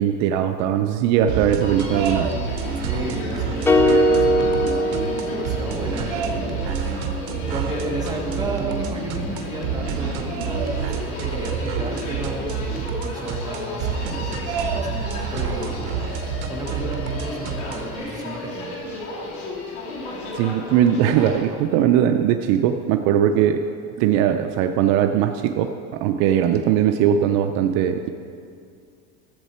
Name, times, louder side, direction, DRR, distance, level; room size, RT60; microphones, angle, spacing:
voice 1, 0.0-2.3 20.3-23.6 24.0-28.1, right 9 dB, 60° right, 7 dB, 0.5 m, -20 dB
sound 1, 1.3-18.0, right 6 dB, 80° right, 0.9 m, -29 dB
Human voice, 1.6-21.4, left 2 dB, 70° left, 2.6 m, -33 dB
voice 2, 2.8-6.6 7.5-12.5 13.0-15.8 16.4-18.8, right 2 dB, 10° right, -2 dB, 1.4 m, -33 dB
sound 2, 3.7-6.0, equal, 10° left, 0.3 m, -19 dB
14.5 x 7.4 x 4.3 m, 2.3 s
cardioid pair, 155°, 31 cm